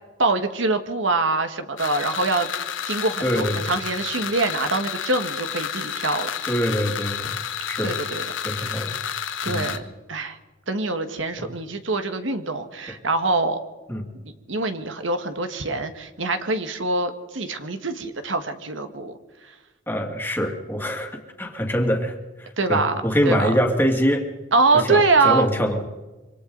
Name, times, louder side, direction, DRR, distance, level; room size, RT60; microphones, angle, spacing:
voice 1, 0.2-2.5 2.8-6.3 7.8-8.2 9.4-10.4 10.7-13.6 14.2-19.1 22.6-23.5 24.5-25.5, right 3 dB, 80° right, 8 dB, 1.6 m, -24 dB
sound 1, 1.8-9.8, left 8 dB, 80° left, 1.3 m, -30 dB
voice 2, 3.2-3.7 6.4-7.4 7.7-8.0 8.4-9.0 9.5-9.8 11.4-11.5 13.9-14.0 19.9-24.3 24.7-25.8, equal, 10° left, 2 dB, 2.4 m, -24 dB
26.5 x 24.5 x 4.0 m, 1.2 s
head